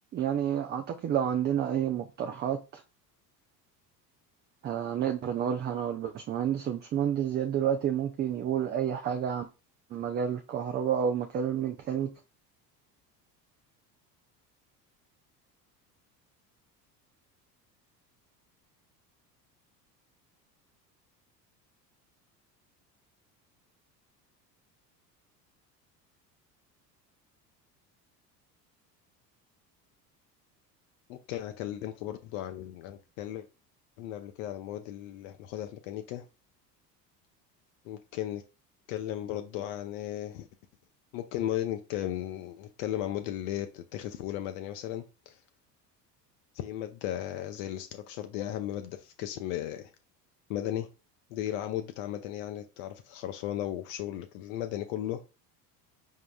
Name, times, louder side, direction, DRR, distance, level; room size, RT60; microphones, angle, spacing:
voice 1, 0.1-2.8 4.6-9.5 9.9-12.1, right 9 dB, 25° right, 0.4 m, -30 dB
voice 2, 31.1-33.5 34.0-36.2 37.8-38.4 38.9-40.5 41.1-45.4 46.5-49.9 50.5-50.9 51.3-55.2, left 12 dB, 55° left, 0.6 m, -35 dB
4.7 x 3.6 x 2.3 m
hypercardioid pair, 70°, 50 cm